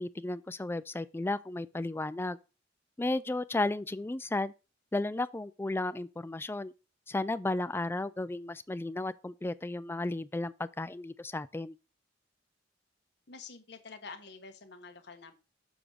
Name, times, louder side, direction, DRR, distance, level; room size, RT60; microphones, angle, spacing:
voice 1, 0.0-2.4 3.0-4.5 4.9-6.7 7.1-11.7, left 2 dB, 10° left, 0.3 m, -34 dB
voice 2, 13.3-15.4, left 4 dB, 65° left, 1.2 m, -48 dB
7.0 x 3.6 x 6.3 m
head